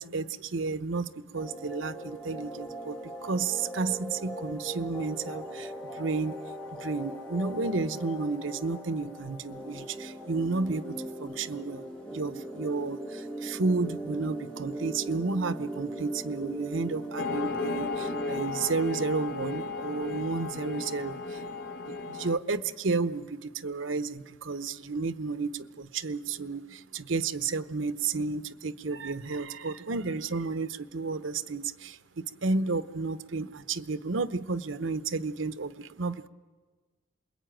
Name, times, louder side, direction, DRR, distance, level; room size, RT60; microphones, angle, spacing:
voice 1, 0.0-6.4 6.7-11.8 12.1-21.4 21.9-36.3, right 4 dB, 85° right, 13 dB, 0.9 m, -32 dB
sound 1, 1.4-18.4, right 1 dB, 5° left, 1.8 m, -40 dB
sound 2, 17.2-22.4, left 3 dB, 70° left, 1.1 m, -34 dB
28.0 x 21.5 x 9.0 m, 1.4 s
head